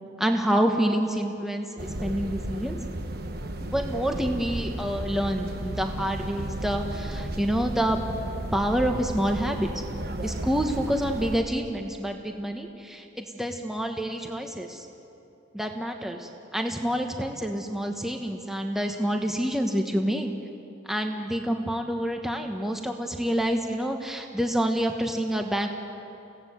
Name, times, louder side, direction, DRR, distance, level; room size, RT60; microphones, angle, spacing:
voice 1, 0.2-2.8 3.7-8.0 8.5-9.7 10.2-14.9 15.5-20.3 20.9-25.7, equal, ahead, 3 dB, 1.2 m, -27 dB
sound 1, 1.8-11.4, right 1 dB, 50° right, 1.4 m, -34 dB
29.0 x 17.0 x 8.0 m, 2.8 s
head